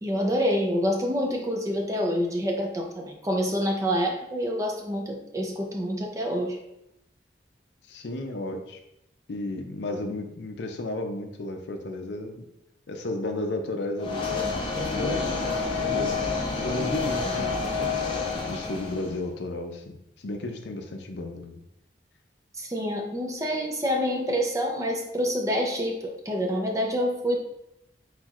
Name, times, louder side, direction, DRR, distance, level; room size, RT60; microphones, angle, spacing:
voice 1, 0.0-6.6 22.6-27.4, equal, 20° right, 1 dB, 0.5 m, -27 dB
voice 2, 7.9-8.8 9.3-12.5 12.9-14.6 14.9-15.5 15.8-16.2 16.6-17.6 18.5-21.6, left 2 dB, 70° left, 5 dB, 0.5 m, -33 dB
sound 1, 14.0-19.2, left 4 dB, 25° left, 0.6 m, -28 dB
4.4 x 4.0 x 2.4 m, 0.84 s
head